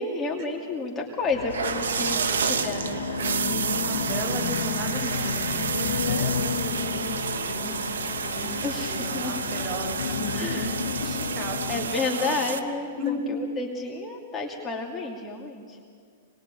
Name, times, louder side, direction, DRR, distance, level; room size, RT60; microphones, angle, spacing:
voice 1, 0.0-3.1 8.6-9.4 10.3-10.7 11.1-11.2 11.7-15.8, left 3 dB, 15° left, -1 dB, 2.6 m, -31 dB
sound 1, 1.2-12.0, left 8 dB, 70° left, 1.2 m, -32 dB
turning on shower, 1.5-12.6, right 6 dB, 85° right, 1.1 m, -30 dB
voice 2, 3.2-11.7 12.1-12.4 13.0-13.2, equal, 40° right, 1 dB, 6.8 m, -34 dB
25.5 x 20.5 x 9.1 m, 2.1 s
hypercardioid pair, 130°, 0 cm